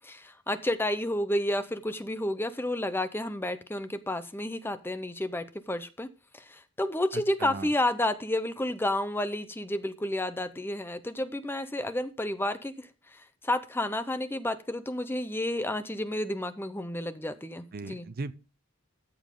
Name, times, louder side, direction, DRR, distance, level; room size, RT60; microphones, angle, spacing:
voice 1, 0.0-6.1 6.3-18.1, left 1 dB, 10° left, 0.7 m, -31 dB
voice 2, 7.1-7.7 17.7-18.3, right 3 dB, 45° right, 0.5 m, -37 dB
13.5 x 7.1 x 3.8 m
head